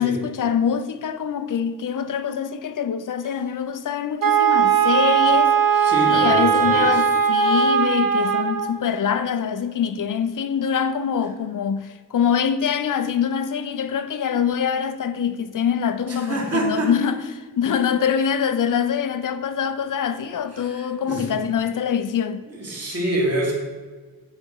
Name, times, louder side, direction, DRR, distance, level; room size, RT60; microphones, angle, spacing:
voice 1, 0.0-22.4, left 7 dB, 55° left, 0.5 m, -24 dB
Wind instrument woodwind instrument, 4.2-8.8, right 7 dB, 60° right, 0.9 m, -19 dB
voice 2, 5.7-7.0 16.1-16.9 20.5-21.3 22.5-23.5, right 1 dB, 40° right, 2.1 m, -26 dB
8.9 x 4.3 x 4.6 m
wide cardioid pair, 115°, 38 cm